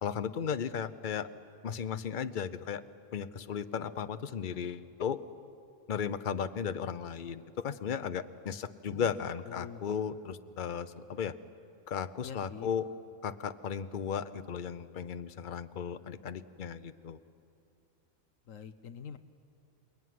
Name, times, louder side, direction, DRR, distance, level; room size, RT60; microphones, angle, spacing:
voice 1, 0.0-1.3 1.6-2.8 3.1-5.2 5.9-11.3 11.9-12.9 13.2-17.2, left 7 dB, 40° left, 11 dB, 0.8 m, -35 dB
voice 2, 9.4-9.8 12.2-12.7 18.5-19.2, left 7 dB, 70° left, 10 dB, 1.2 m, -45 dB
28.5 x 21.5 x 9.4 m, 2.5 s
omnidirectional pair, 1.4 m